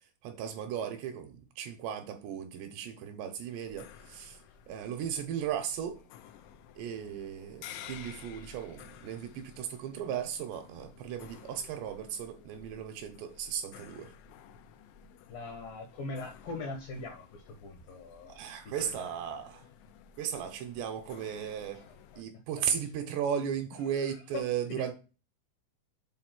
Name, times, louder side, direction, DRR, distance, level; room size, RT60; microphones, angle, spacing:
voice 1, 0.2-4.4 4.7-6.0 6.8-14.1 18.3-19.7 20.2-21.8 22.2-24.9, right 8 dB, 75° right, 2.7 m, -36 dB
sound 1, 3.6-22.2, left 8 dB, 85° left, 3.2 m, -53 dB
voice 2, 15.3-18.3 18.6-18.9 21.7-22.2 23.9-24.0 24.3-24.4 24.7-24.9, left 3 dB, 70° left, 2.3 m, -41 dB
7.9 x 4.2 x 6.0 m
omnidirectional pair, 5.5 m